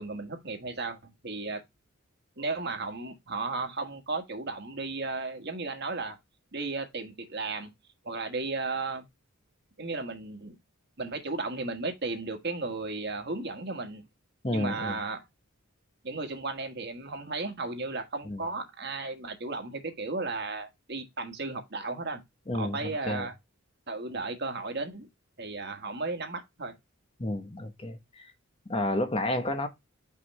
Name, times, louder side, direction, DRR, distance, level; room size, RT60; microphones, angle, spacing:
voice 1, 0.0-1.6 2.4-6.2 6.5-7.7 8.0-9.0 9.8-10.6 11.0-14.0 14.5-15.2 16.0-22.2 22.5-23.3 23.9-25.1 25.4-26.7, right 3 dB, 50° right, 1.5 m, -34 dB
voice 2, 14.4-15.0 18.3-18.4 22.5-23.3 27.2-28.0 28.7-29.7, left 1 dB, 25° left, 0.9 m, -30 dB
5.8 x 5.5 x 3.1 m
head